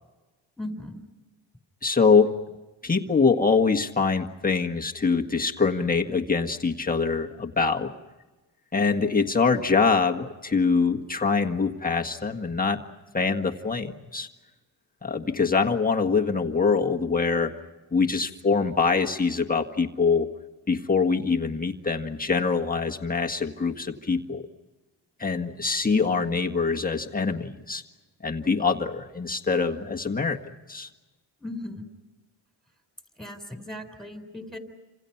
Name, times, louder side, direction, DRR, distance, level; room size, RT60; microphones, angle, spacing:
voice 1, 0.6-1.0 31.4-31.9 33.2-34.6, left 1 dB, ahead, 6 dB, 4.0 m, -37 dB
voice 2, 1.8-2.3 2.8-7.9 8.7-12.8 13.1-14.3 15.0-17.5 17.9-20.3 20.7-24.4 25.2-27.8 28.2-30.4 30.7-30.9, left 4 dB, 15° left, 2 dB, 1.6 m, -24 dB
29.5 x 27.0 x 5.9 m, 1.2 s
cardioid pair, 125°, 49 cm